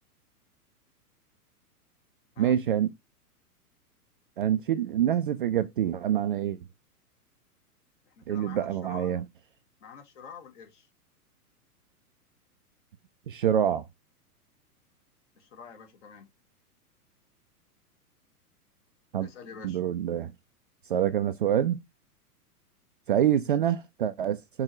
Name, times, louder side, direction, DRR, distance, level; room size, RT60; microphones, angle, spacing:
voice 1, 2.4-2.9 4.4-6.6 8.3-9.2 13.3-13.8 19.1-19.3 19.6-20.3 20.9-21.8 23.1-24.6, right 10 dB, 35° right, 0.4 m, -26 dB
voice 2, 8.1-9.2 9.8-10.9 15.4-16.3 19.2-19.8, left 6 dB, 50° left, 2.7 m, -47 dB
6.1 x 3.5 x 4.7 m
figure-of-eight pair, 105°, 46 cm